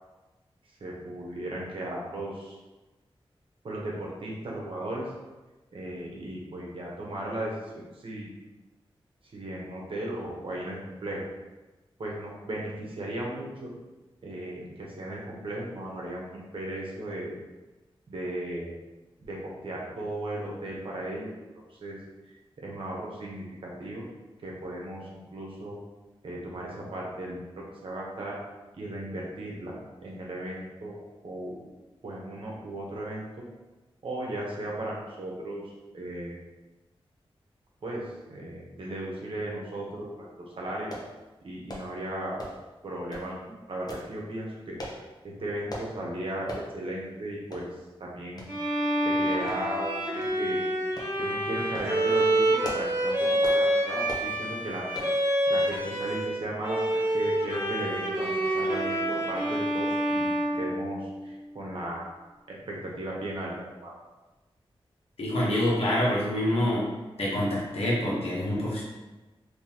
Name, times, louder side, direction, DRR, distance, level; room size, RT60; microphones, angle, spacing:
voice 1, 0.8-2.6 3.6-5.0 5.7-8.3 9.3-11.2 12.0-13.7 14.2-17.3 18.1-18.8 19.2-21.3 21.7-22.0 22.6-24.1 24.4-25.8 26.2-28.4 28.8-31.0 31.2-31.5 32.0-33.4 34.0-36.4 37.8-40.9 41.4-42.4 42.8-47.7 48.0-48.4 49.0-50.6 51.2-54.9 55.5-62.1 62.5-63.5 63.8-63.9, right 1 dB, 65° right, -3 dB, 0.9 m, -36 dB
sound 1, 40.9-41.1 41.7-41.9 42.4-42.7 43.1-43.3 43.9-44.1 44.8-45.0 45.7-45.9 46.5-46.7 47.1-47.2 47.5-47.7 48.4-48.5 49.5-49.9 50.2-50.4 51.0-51.1 51.6-51.9 52.4-52.9 53.4-53.6 54.1-54.3 54.9-55.2 55.7-55.8 56.1-56.2, equal, 40° left, 0.7 m, -39 dB
Bowed string instrument, 48.5-56.3 56.6-61.4, right 1 dB, 25° right, 1.2 m, -27 dB
voice 2, 65.2-66.9 67.2-68.8, left 1 dB, 80° left, -5 dB, 1.1 m, -26 dB
3.7 x 2.8 x 2.9 m, 1.1 s
wide cardioid pair, 120°, 10 cm